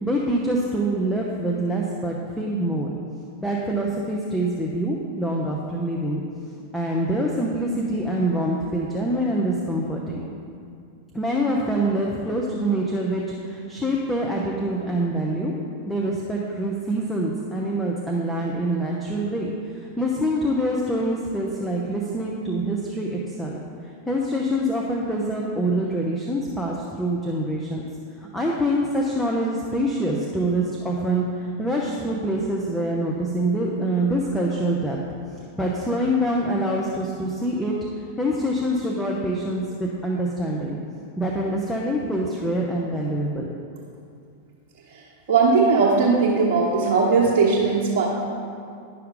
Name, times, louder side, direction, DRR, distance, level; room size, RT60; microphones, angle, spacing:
voice 1, 0.0-2.9 3.4-6.2 6.7-10.2 11.1-15.5 15.9-23.6 24.1-27.8 28.2-35.0 35.6-40.8 41.2-43.5, right 1 dB, 5° left, -3 dB, 0.7 m, -25 dB
voice 2, 45.3-48.1, right 4 dB, 50° right, -6 dB, 1.1 m, -19 dB
10.5 x 5.7 x 3.7 m, 2.4 s
figure-of-eight pair, 90°, 0 cm